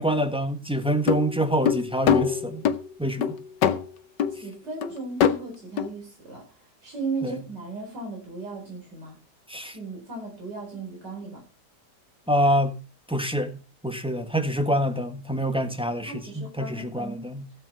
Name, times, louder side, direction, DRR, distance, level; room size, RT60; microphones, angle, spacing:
voice 1, 0.0-2.7 3.0-3.4 7.2-7.4 9.5-9.8 12.3-12.7 13.1-17.4, equal, 5° right, 1.4 m, -26 dB
sound 1, 0.9-2.8 3.2-3.9 4.2-4.4 4.8-4.9 5.2-5.4 5.8-5.9, left 8 dB, 85° left, 1.6 m, -22 dB
voice 2, 4.3-6.4 6.8-9.2 9.7-11.4 16.1-17.2, right 3 dB, 75° right, 5.3 m, -36 dB
16.0 x 7.8 x 5.6 m
omnidirectional pair, 1.8 m